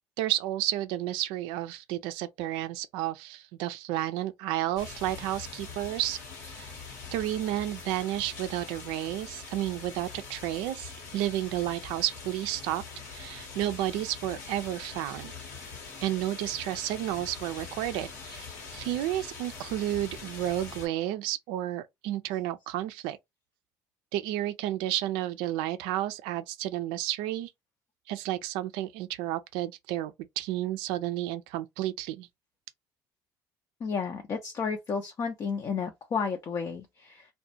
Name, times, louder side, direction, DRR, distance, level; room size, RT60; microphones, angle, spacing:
voice 1, 0.2-6.7 7.1-12.8 13.1-15.3 16.0-23.2 24.1-27.5 28.1-32.3, right 14 dB, 70° right, 0.4 m, -31 dB
sound 1, 4.8-20.9, left 4 dB, 80° left, 1.0 m, -43 dB
voice 2, 33.8-37.3, left 5 dB, 45° left, 0.5 m, -32 dB
2.3 x 2.1 x 2.7 m
hypercardioid pair, 60°, 9 cm